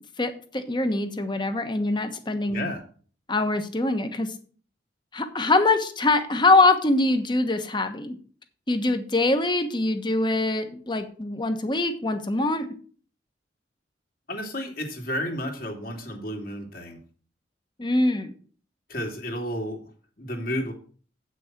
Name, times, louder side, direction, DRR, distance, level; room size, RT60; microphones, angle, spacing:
voice 1, 0.2-2.7 3.3-4.3 5.1-8.2 8.7-12.7 17.8-18.3, left 2 dB, 25° left, 8 dB, 1.1 m, -23 dB
voice 2, 2.5-2.8 14.3-17.0 18.9-19.8 20.2-20.7, equal, 55° left, 2 dB, 2.4 m, -32 dB
8.4 x 6.2 x 5.9 m, 0.43 s
head